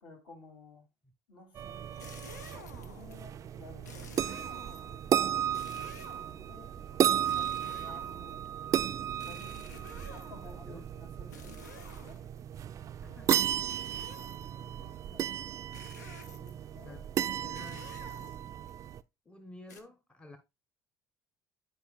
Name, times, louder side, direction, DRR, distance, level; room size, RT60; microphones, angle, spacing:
voice 1, 0.0-0.8 1.3-1.8 2.5-5.4 6.1-8.4 9.2-12.2 13.1-13.2 14.6-15.4 16.3-17.5 17.8-17.9, left 3 dB, 55° left, 2.4 m, -54 dB
sound 1, 1.5-19.0, right 10 dB, 35° right, 0.3 m, -34 dB
sound 2, 1.9-3.2 3.8-5.0 5.5-6.5 7.2-8.5 9.2-10.6 11.3-12.4 13.7-14.6 15.7-16.6 17.5-18.7 19.7-19.8, left 4 dB, 80° left, 0.8 m, -52 dB
voice 2, 9.7-10.1 10.4-10.9 13.0-13.6 16.8-17.0 17.4-17.9 19.2-20.4, left 2 dB, 10° left, 0.9 m, -51 dB
11.5 x 4.6 x 2.2 m
figure-of-eight pair, 60°, 9 cm